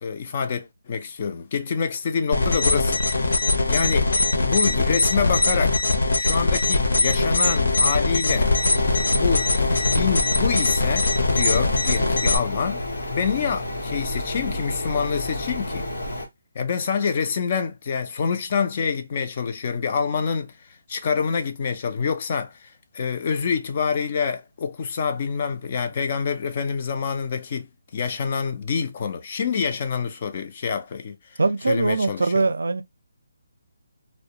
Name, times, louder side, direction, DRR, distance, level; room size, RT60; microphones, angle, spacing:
voice 1, 0.0-3.0 3.3-3.4 3.7-4.1 4.4-5.8 6.1-8.5 9.1-12.8 13.1-15.9 16.6-20.5 20.9-22.7 22.9-31.4 31.7-32.4, left 6 dB, 25° left, 0.3 m, -26 dB
sound 1, 2.3-12.4, left 2 dB, 60° left, 0.7 m, -21 dB
sound 2, 8.3-16.3, left 1 dB, 90° left, 0.9 m, -31 dB
voice 2, 31.4-32.8, right 3 dB, 85° right, 0.4 m, -22 dB
2.3 x 2.1 x 2.8 m
hypercardioid pair, 175°, 0 cm